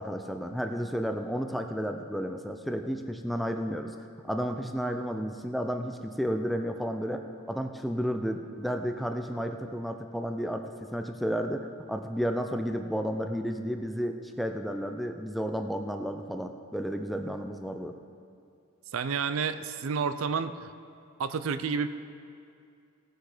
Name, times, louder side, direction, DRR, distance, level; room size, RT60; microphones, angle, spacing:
voice 1, 0.0-3.9 4.2-7.2 7.5-18.0, equal, ahead, 5 dB, 0.4 m, -32 dB
voice 2, 18.9-20.7 21.2-21.9, right 5 dB, 65° right, 12 dB, 0.4 m, -30 dB
17.5 x 6.4 x 4.9 m, 2.4 s
head